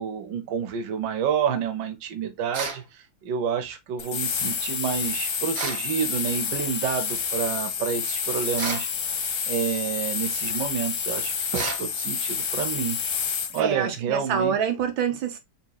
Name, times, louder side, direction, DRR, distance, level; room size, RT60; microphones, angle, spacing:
voice 1, 0.0-8.9 9.5-13.0 13.5-14.6, right 7 dB, 70° right, 1.4 m, -29 dB
sound 1, 2.5-2.9 5.5-5.9 8.6-8.9 11.5-11.9, right 4 dB, 50° right, 1.1 m, -31 dB
sound 2, 4.0-13.6, left 6 dB, 55° left, 1.0 m, -29 dB
voice 2, 13.6-15.4, right 7 dB, 90° right, 1.7 m, -26 dB
7.0 x 2.9 x 2.2 m
omnidirectional pair, 2.1 m